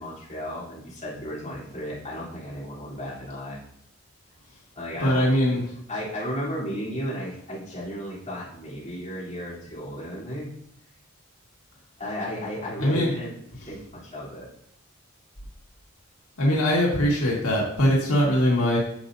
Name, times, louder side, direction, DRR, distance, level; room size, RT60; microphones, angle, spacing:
voice 1, 0.0-3.6 4.7-5.3 5.9-10.5 12.0-13.3 13.7-14.5, equal, 35° left, -9 dB, 3.5 m, -34 dB
voice 2, 5.0-5.6 12.8-13.1 16.4-18.8, equal, 85° left, -4 dB, 2.0 m, -21 dB
10.5 x 6.5 x 2.7 m, 0.70 s
head